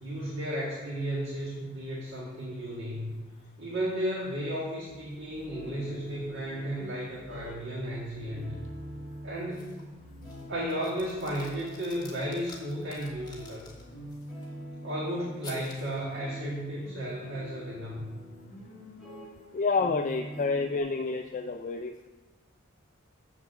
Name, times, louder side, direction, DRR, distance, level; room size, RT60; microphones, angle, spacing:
voice 1, 0.0-3.1 3.6-8.6 9.2-9.7 10.5-13.7 14.8-18.1, equal, 60° right, -5 dB, 1.7 m, -34 dB
sound 1, 4.9-20.8, equal, ahead, 3.0 m, -45 dB
sound 2, 9.5-9.9 10.2-14.5 15.4-16.0, left 3 dB, 20° left, 1.5 m, -51 dB
voice 2, 19.5-22.1, left 4 dB, 40° left, 6 dB, 0.4 m, -29 dB
7.2 x 6.5 x 6.7 m, 1.2 s
head